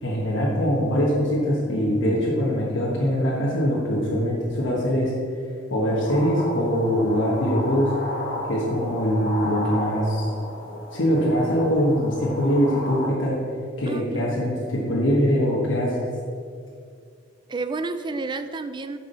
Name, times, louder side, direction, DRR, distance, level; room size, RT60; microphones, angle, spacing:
voice 1, 0.0-5.1 5.7-7.9 8.5-10.3 10.9-13.4 13.8-16.1, equal, 70° left, -6 dB, 1.4 m, -22 dB
sound 1, 6.0-13.1, left 1 dB, 50° left, 1.7 m, -33 dB
voice 2, 13.9-14.4 17.5-19.0, right 3 dB, 25° right, 10 dB, 0.4 m, -30 dB
7.0 x 6.2 x 5.6 m, 2.2 s
head